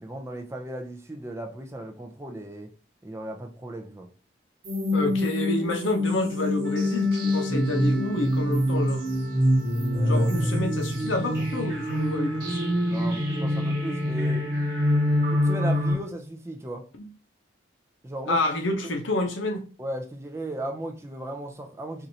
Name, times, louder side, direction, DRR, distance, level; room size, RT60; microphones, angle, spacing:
voice 1, 0.0-2.7 3.0-4.1 9.9-10.5 12.9-14.5 15.0-16.8 18.0-18.4 19.8-22.1, right 1 dB, 15° right, 0.4 m, -36 dB
sound 1, 4.6-15.9, left 1 dB, 50° right, 1.1 m, -25 dB
voice 2, 4.9-9.1 10.1-12.6 17.0-17.1 18.3-19.7, left 2 dB, 75° left, 0.7 m, -28 dB
Trumpet, 6.6-16.1, right 2 dB, 10° left, 1.3 m, -45 dB
4.3 x 2.5 x 2.7 m
head